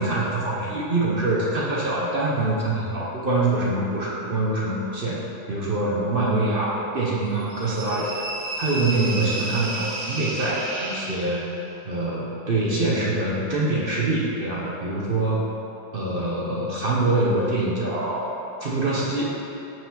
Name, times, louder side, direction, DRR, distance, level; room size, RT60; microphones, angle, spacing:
voice 1, 0.0-5.2 5.5-8.1 8.6-11.4 11.8-15.4 15.9-19.4, right 2 dB, 50° right, -5 dB, 0.6 m, -24 dB
sound 1, 7.5-11.7, right 2 dB, 75° right, 2.3 m, -32 dB
6.1 x 5.1 x 5.8 m, 2.9 s
omnidirectional pair, 2.2 m